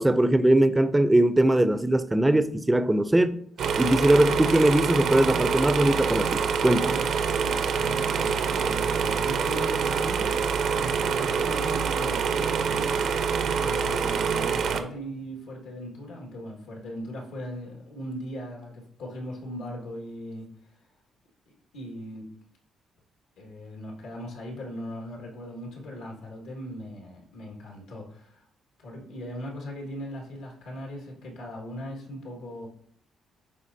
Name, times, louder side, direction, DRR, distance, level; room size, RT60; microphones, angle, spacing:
voice 1, 0.0-3.4 3.8-7.0, right 1 dB, 10° right, 0.4 m, -21 dB
sound 1, 3.6-14.8, right 6 dB, 70° right, 0.5 m, -26 dB
voice 2, 6.8-10.5 10.8-13.1 13.5-20.5 21.7-22.3 23.4-28.4 28.8-32.7, equal, 90° left, 1.7 m, -39 dB
9.7 x 3.7 x 2.7 m
cardioid pair, 90°, 0 cm